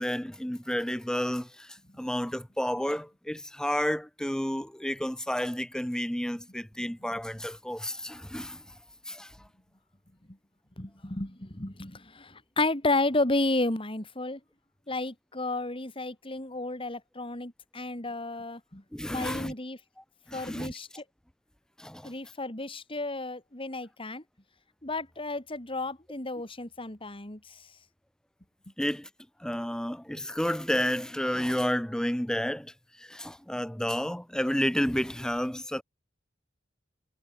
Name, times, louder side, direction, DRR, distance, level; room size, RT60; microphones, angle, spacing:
voice 1, 0.0-8.6 9.1-9.4 18.9-19.5 20.0-20.7 21.8-22.1 28.8-29.1 29.4-35.8, equal, 5° left, 0.6 m, -31 dB
voice 2, 10.8-14.4 14.9-18.8 19.1-19.8 20.3-21.0 22.0-24.2 24.8-27.4, left 2 dB, 30° left, 3.2 m, -32 dB
head